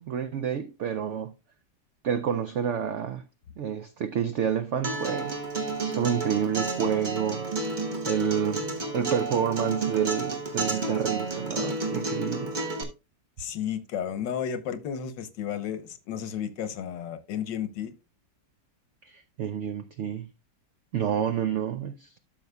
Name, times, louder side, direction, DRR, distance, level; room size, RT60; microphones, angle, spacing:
voice 1, 0.0-1.3 2.0-3.2 3.6-7.5 8.1-8.6 8.9-12.6 19.0-20.3 20.9-22.1, right 8 dB, 85° right, 0.6 m, -29 dB
Acoustic guitar, 4.8-12.8, right 3 dB, 30° right, 1.2 m, -31 dB
voice 2, 13.4-17.9, left 8 dB, 85° left, 1.6 m, -33 dB
12.5 x 6.0 x 2.2 m
omnidirectional pair, 1.9 m